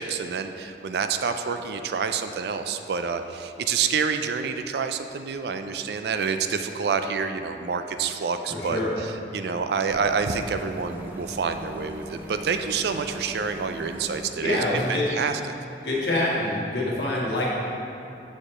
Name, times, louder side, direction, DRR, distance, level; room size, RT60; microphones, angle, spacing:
voice 1, 0.0-15.4, right 5 dB, 65° right, 8 dB, 0.3 m, -28 dB
voice 2, 8.5-8.9 14.4-15.1 15.8-17.5, left 1 dB, 70° left, -5 dB, 1.5 m, -25 dB
sound 1, 9.9-14.3, equal, 10° right, 0.5 m, -40 dB
6.9 x 4.6 x 4.3 m, 3.0 s
head